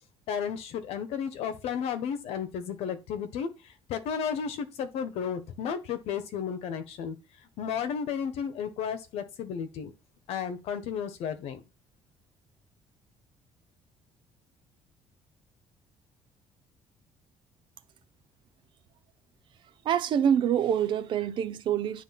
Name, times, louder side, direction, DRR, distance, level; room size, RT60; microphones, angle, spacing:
voice 1, 0.3-7.2 7.6-9.9 10.3-11.6, left 7 dB, 70° left, 1.3 m, -33 dB
voice 2, 19.8-22.0, right 9 dB, 50° right, 0.7 m, -26 dB
9.9 x 3.4 x 5.8 m
cardioid pair, 175°, 11 cm